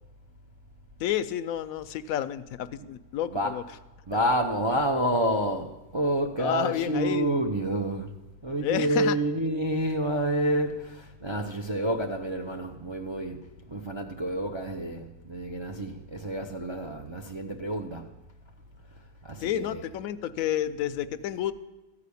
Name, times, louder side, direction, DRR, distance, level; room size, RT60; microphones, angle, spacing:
voice 1, 1.0-3.6 6.4-7.4 8.6-9.2 19.4-21.5, left 11 dB, 80° left, 1.0 m, -30 dB
voice 2, 3.3-3.7 4.1-8.1 8.4-18.2 19.2-19.9, right 1 dB, 35° right, 0.4 m, -29 dB
13.5 x 4.9 x 8.3 m
omnidirectional pair, 1.5 m